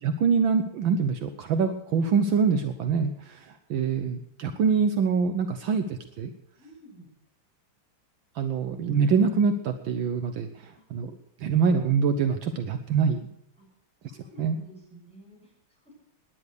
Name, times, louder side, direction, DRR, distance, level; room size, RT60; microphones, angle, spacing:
voice 1, 0.0-6.3 8.4-11.1 11.4-13.2 14.4-14.6, right 5 dB, 70° right, 8 dB, 1.6 m, -25 dB
voice 2, 6.6-7.1 10.8-11.0 13.6-13.7 14.0-15.9, equal, 5° left, -1 dB, 6.8 m, -51 dB
18.0 x 10.5 x 6.7 m, 0.75 s
omnidirectional pair, 2.3 m